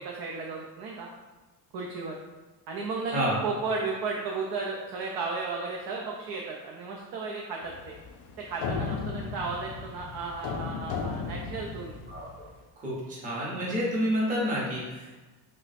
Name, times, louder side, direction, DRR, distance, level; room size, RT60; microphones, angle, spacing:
voice 1, 0.0-1.1 1.7-2.2 2.7-7.9 8.5-12.0, right 4 dB, 65° right, -1 dB, 0.5 m, -34 dB
sound 1, 7.6-12.5, left 5 dB, 65° left, 0.5 m, -35 dB
voice 2, 12.8-15.2, equal, 20° right, -6 dB, 0.7 m, -29 dB
3.2 x 2.1 x 4.0 m, 1.2 s
cardioid pair, 170°, 43 cm